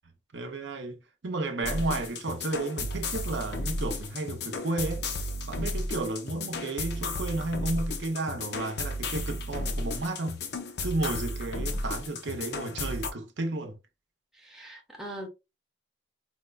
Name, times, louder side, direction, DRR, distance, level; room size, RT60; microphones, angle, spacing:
voice 1, 0.3-5.0 5.5-10.4 10.8-13.7, right 2 dB, 65° right, 0.7 m, -32 dB
sound 1, 1.6-13.1, left 2 dB, 55° left, 0.5 m, -34 dB
voice 2, 14.4-15.3, right 1 dB, 5° right, 0.7 m, -41 dB
4.2 x 2.2 x 2.3 m
head